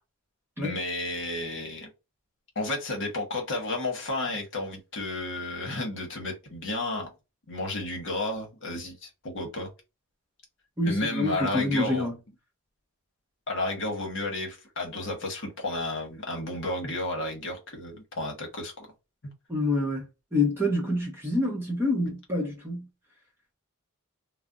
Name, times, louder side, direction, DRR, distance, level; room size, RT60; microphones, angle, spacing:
voice 1, 0.6-1.9 2.5-7.1 7.5-9.7 10.8-12.1 13.5-18.9, left 2 dB, 55° left, 1.0 m, -32 dB
voice 2, 10.8-12.1 19.5-22.9, left 2 dB, 10° right, 0.8 m, -27 dB
2.4 x 2.0 x 3.6 m
head